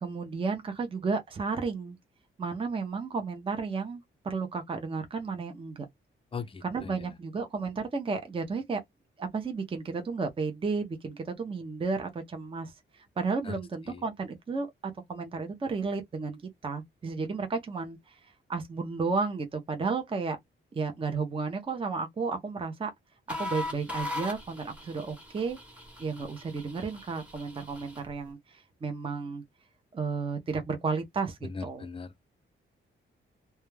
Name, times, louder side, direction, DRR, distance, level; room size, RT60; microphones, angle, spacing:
voice 1, 0.0-2.0 2.4-5.9 6.6-8.8 9.2-20.4 20.7-22.9 23.3-25.6 26.0-29.4 29.9-31.9, right 4 dB, 25° right, 0.5 m, -33 dB
voice 2, 6.3-7.1 13.4-14.0 31.4-32.2, left 5 dB, 25° left, 0.4 m, -40 dB
sound 1, 23.3-28.1, left 2 dB, 5° right, 0.9 m, -40 dB
2.2 x 2.2 x 3.0 m
wide cardioid pair, 135°, 21 cm